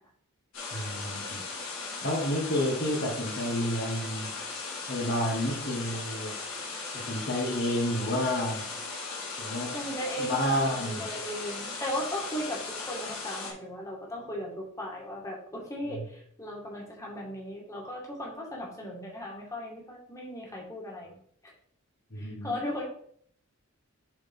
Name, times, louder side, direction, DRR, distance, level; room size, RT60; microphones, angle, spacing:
sound 1, 0.5-13.5, left 4 dB, 65° left, 3.4 m, -38 dB
voice 1, 0.7-1.4 2.0-4.3 4.9-6.3 6.9-8.7 9.4-9.8 10.2-11.1 15.9-16.0 22.1-22.5, left 1 dB, 50° left, -1 dB, 1.6 m, -30 dB
voice 2, 9.7-21.1 22.2-22.8, left 1 dB, 15° left, -3 dB, 2.1 m, -37 dB
7.6 x 4.2 x 5.5 m, 0.63 s
head